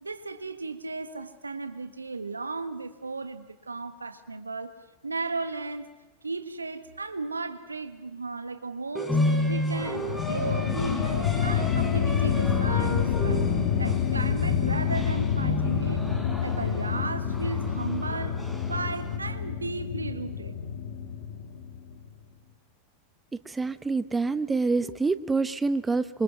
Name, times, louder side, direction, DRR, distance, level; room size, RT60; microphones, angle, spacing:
voice 1, 0.0-4.7 5.0-5.9 6.2-9.2 9.5-13.4 13.8-16.0 16.4-18.4 18.7-20.5, right 3 dB, 85° right, 10 dB, 1.5 m, -35 dB
sound 1, 8.9-19.2, left 1 dB, 5° left, 4.0 m, -32 dB
sound 2, 9.8-22.1, left 8 dB, 60° left, 1.9 m, -28 dB
voice 2, 23.5-26.2, right 3 dB, 15° right, 14 dB, 0.9 m, -26 dB
26.5 x 25.5 x 6.1 m, 1.1 s
figure-of-eight pair, 90°, 0 cm